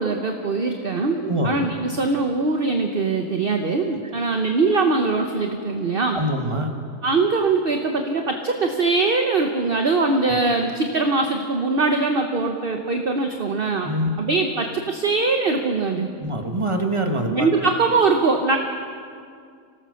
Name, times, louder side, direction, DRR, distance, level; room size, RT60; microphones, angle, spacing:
voice 1, 0.0-1.2 1.4-6.2 7.0-16.1 17.3-18.6, right 3 dB, 40° right, 4 dB, 1.1 m, -22 dB
voice 2, 1.2-1.6 6.1-6.7 13.8-14.2 16.2-17.5, right 1 dB, 20° right, 4 dB, 1.7 m, -24 dB
25.0 x 18.0 x 6.5 m, 2.3 s
omnidirectional pair, 1.7 m